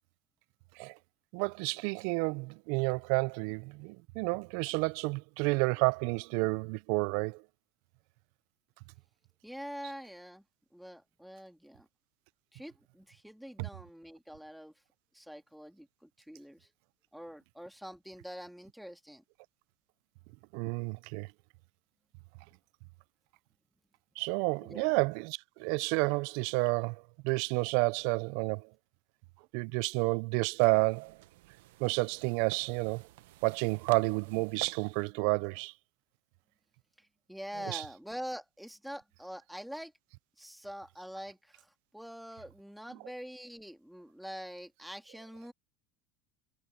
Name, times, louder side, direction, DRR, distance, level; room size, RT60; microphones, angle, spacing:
voice 1, 1.3-7.4 13.6-13.7 20.5-21.3 24.2-28.7 29.5-31.1 31.8-33.0 33.4-35.7 37.7-37.8, right 28 dB, 65° right, 0.4 m, -30 dB
voice 2, 9.4-10.4 10.7-11.9 12.5-14.7 15.1-16.7 17.1-19.2 24.6-24.9 37.0-39.9 40.4-45.5, equal, ahead, 2.1 m, -45 dB
sound 1, 30.6-35.1, right 17 dB, 85° right, 0.9 m, -49 dB
supercardioid pair, 140°, 0 cm